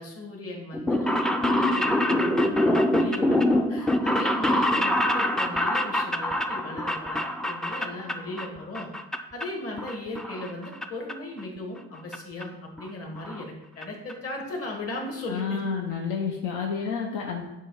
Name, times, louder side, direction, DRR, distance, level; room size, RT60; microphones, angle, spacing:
voice 1, 0.0-8.9 9.3-15.6, left 2 dB, 50° left, 0 dB, 1.7 m, -37 dB
sound 1, 0.7-8.5 8.7-9.4 9.8-10.8 11.1-11.2 12.1-12.2 12.4-12.5 12.8-12.9 13.2-13.4 13.8-13.9 14.1-14.2, left 1 dB, ahead, 0.4 m, -25 dB
voice 2, 15.3-17.4, left 5 dB, 85° left, 0 dB, 0.7 m, -30 dB
7.2 x 2.5 x 5.5 m, 1.0 s
cardioid pair, 90°, 30 cm